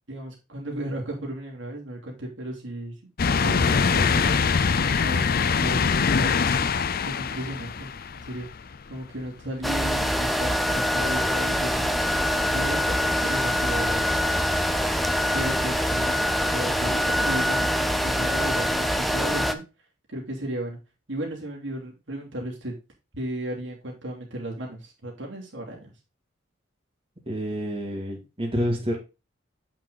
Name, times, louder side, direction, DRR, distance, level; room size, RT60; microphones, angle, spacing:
voice 1, 0.1-2.9 3.3-4.4 4.9-6.4 7.0-8.5 8.9-12.2 12.5-14.0 15.3-19.6 20.1-20.8 21.1-22.7 23.1-25.9, right 1 dB, 70° right, -1 dB, 2.9 m, -35 dB
sound 1, 3.2-8.8 9.2-9.3 10.7-10.8, left 5 dB, 50° left, 0.6 m, -23 dB
sound 2, 9.6-19.5, equal, ahead, 0.7 m, -24 dB
voice 2, 27.3-29.0, equal, 30° right, -1 dB, 2.5 m, -28 dB
8.1 x 5.9 x 3.9 m, 0.28 s
head